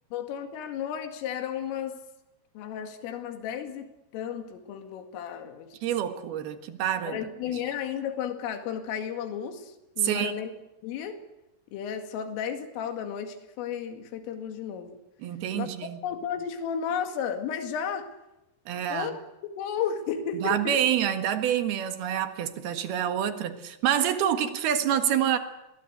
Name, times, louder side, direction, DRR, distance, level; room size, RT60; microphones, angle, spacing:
voice 1, 0.1-2.0 2.6-5.8 7.1-10.5 10.8-11.2 11.7-15.0 15.5-15.7 16.0-18.1 18.9-19.2 19.6-20.8, left 8 dB, 80° left, 4.7 m, -33 dB
voice 2, 5.8-7.2 10.0-10.3 15.2-16.0 18.7-19.1 20.3-25.4, right 10 dB, 60° right, 3.0 m, -27 dB
28.5 x 22.0 x 8.1 m
omnidirectional pair, 5.7 m